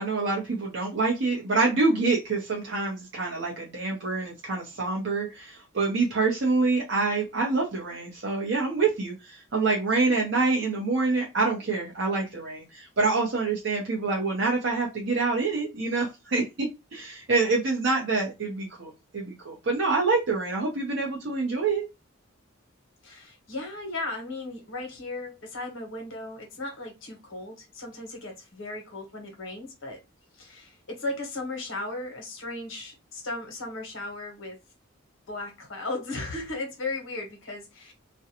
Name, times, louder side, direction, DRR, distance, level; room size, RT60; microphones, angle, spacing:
voice 1, 0.0-21.8, right 3 dB, 55° right, 0.6 m, -26 dB
voice 2, 23.0-30.0 30.4-34.6 35.3-37.9, left 2 dB, 65° left, 1.0 m, -36 dB
2.5 x 2.1 x 2.8 m
head